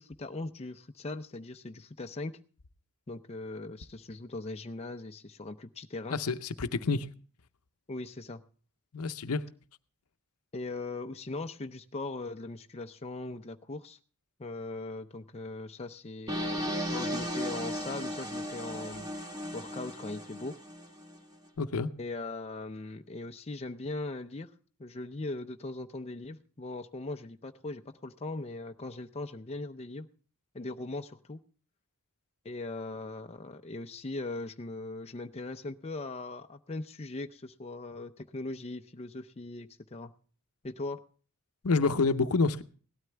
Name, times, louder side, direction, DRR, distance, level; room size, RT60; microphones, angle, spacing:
voice 1, 0.0-2.4 3.1-6.2 7.9-8.4 10.5-14.0 14.4-19.1 19.5-20.6 22.0-24.5 24.8-30.1 30.5-31.4 32.4-40.1 40.6-41.0, left 2 dB, 30° left, 0.5 m, -39 dB
voice 2, 6.1-7.1 8.9-9.5 21.6-21.9 41.6-42.6, left 4 dB, 75° left, 0.7 m, -28 dB
sound 1, 16.3-21.2, equal, 20° right, 1.5 m, -36 dB
17.5 x 12.5 x 3.3 m
head